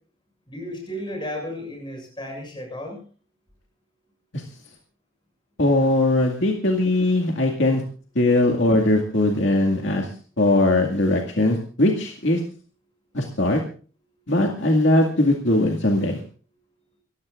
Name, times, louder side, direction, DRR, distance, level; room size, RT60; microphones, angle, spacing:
voice 1, 0.5-3.0, left 1 dB, 20° left, 3 dB, 7.0 m, -33 dB
voice 2, 5.6-7.8 8.2-10.1 10.4-12.4 13.1-13.6 14.3-16.2, left 1 dB, 60° left, 1 dB, 2.2 m, -20 dB
26.0 x 15.5 x 2.5 m, 0.39 s
head